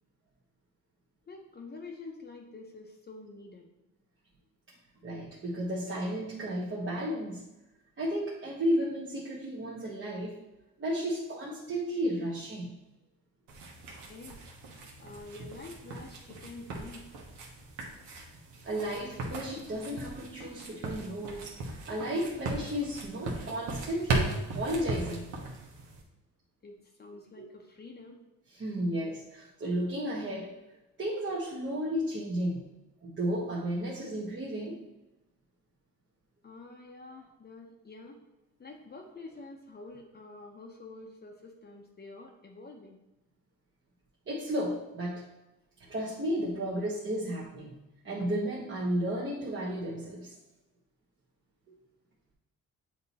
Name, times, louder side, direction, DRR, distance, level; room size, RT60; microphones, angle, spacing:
voice 1, 1.3-3.7 14.1-14.4 15.0-17.0 26.6-28.2 36.4-38.2 38.6-43.0, left 3 dB, 30° left, 1 dB, 0.8 m, -47 dB
voice 2, 5.0-7.4 8.0-10.4 10.8-12.7 18.6-25.3 27.4-27.5 28.5-30.5 31.0-32.6 33.0-34.8 44.3-45.2 45.8-47.8 48.0-50.3, equal, 40° right, -5 dB, 1.2 m, -33 dB
sound 1, 13.5-26.0, right 2 dB, 85° right, 1.3 m, -38 dB
7.7 x 2.9 x 4.1 m, 0.98 s
cardioid pair, 90°, 30 cm